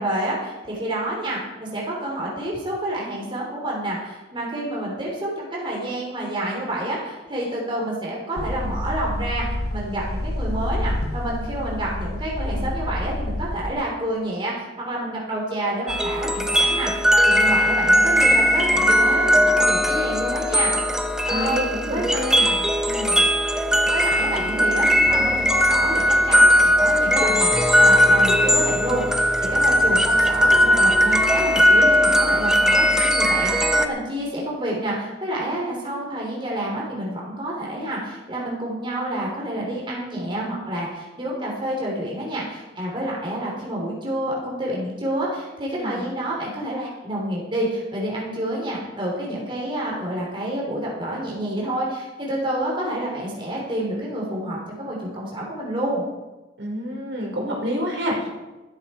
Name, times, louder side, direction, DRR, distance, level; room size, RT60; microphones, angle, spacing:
voice 1, 0.0-20.7 21.3-22.2 23.5-23.6 23.9-27.5 27.8-56.0, right 1 dB, 25° right, -4 dB, 3.7 m, -28 dB
sound 1, 8.4-13.7, left 1 dB, 55° left, 1.4 m, -28 dB
sound 2, 15.9-33.9, equal, 5° right, 0.7 m, -18 dB
voice 2, 21.3-22.5 22.8-23.1 45.7-46.0 56.6-58.4, equal, 70° right, -2 dB, 4.5 m, -28 dB
14.0 x 13.0 x 4.5 m, 1.1 s
head